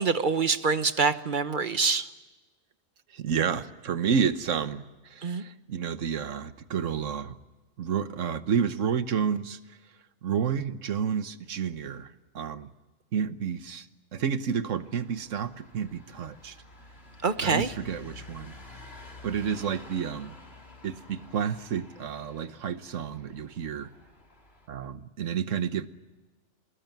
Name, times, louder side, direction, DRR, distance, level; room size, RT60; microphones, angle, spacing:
voice 1, 0.0-2.1 5.2-5.4 17.2-17.7, right 5 dB, 40° right, 12 dB, 1.1 m, -25 dB
voice 2, 3.1-7.4 7.8-9.6 10.2-12.7 13.1-13.9 14.1-16.6 17.4-18.5 19.2-20.3 20.8-23.9 24.7-25.9, right 7 dB, 75° right, 12 dB, 1.4 m, -30 dB
sound 1, 14.7-24.7, left 2 dB, 50° left, 3.3 m, -50 dB
25.5 x 20.5 x 9.3 m, 1.2 s
omnidirectional pair, 1.3 m